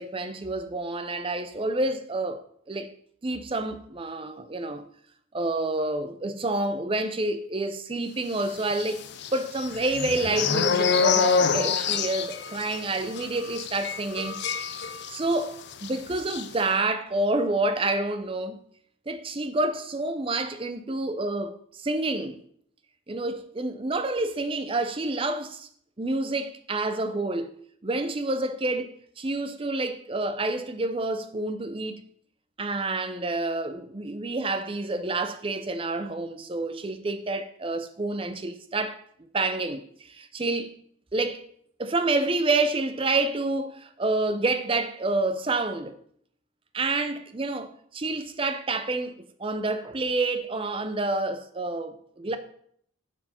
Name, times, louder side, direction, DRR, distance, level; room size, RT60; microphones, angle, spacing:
voice 1, 0.0-2.9 3.2-4.9 5.3-9.0 9.3-18.6 19.1-22.4 23.1-25.7 26.0-27.5 27.8-32.0 32.6-39.0 39.3-40.7 41.1-41.4 41.8-45.9 46.7-49.1 49.4-52.4, right 2 dB, 25° right, 0.5 m, -28 dB
sound 1, 8.7-15.4 15.7-15.9 16.2-16.5, left 6 dB, 55° left, 0.5 m, -27 dB
11.0 x 4.5 x 4.3 m
head